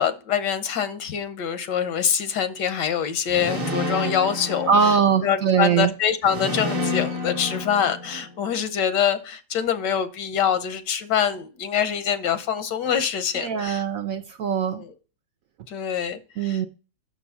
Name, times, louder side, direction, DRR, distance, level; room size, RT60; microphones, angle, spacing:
voice 1, 0.0-4.7 5.2-13.8 14.7-14.9 15.7-16.6, left 8 dB, 85° left, 1.5 m, -25 dB
sound 1, 3.3-5.5 6.2-8.4, left 2 dB, 30° right, 0.7 m, -29 dB
voice 2, 4.7-5.9 13.4-14.8 16.4-16.7, right 7 dB, 70° right, 0.9 m, -21 dB
6.2 x 6.0 x 6.9 m
omnidirectional pair, 1.8 m